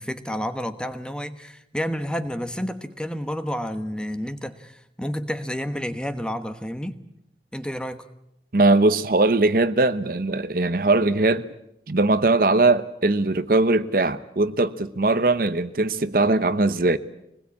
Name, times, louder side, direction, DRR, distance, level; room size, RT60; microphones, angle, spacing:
voice 1, 0.0-7.0 7.5-8.1, equal, 5° left, 1.1 m, -30 dB
voice 2, 8.5-11.5 11.9-17.0, right 2 dB, 50° right, 0.8 m, -20 dB
24.5 x 20.5 x 8.5 m
head